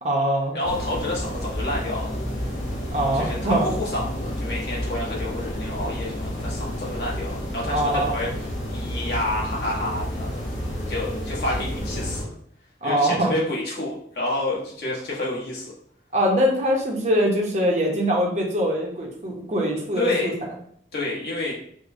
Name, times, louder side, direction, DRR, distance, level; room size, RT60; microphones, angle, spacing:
voice 1, 0.0-0.6 2.9-3.7 7.7-8.1 12.8-13.3 16.1-20.3, equal, 40° right, -1 dB, 0.7 m, -23 dB
voice 2, 0.5-2.1 3.1-10.4 10.9-12.3 12.8-15.7 20.0-20.3 20.9-21.5, left 1 dB, 60° left, -5 dB, 1.1 m, -29 dB
sound 1, 0.6-12.2, equal, 90° left, 1.1 m, -30 dB
4.8 x 2.1 x 2.6 m, 0.64 s
head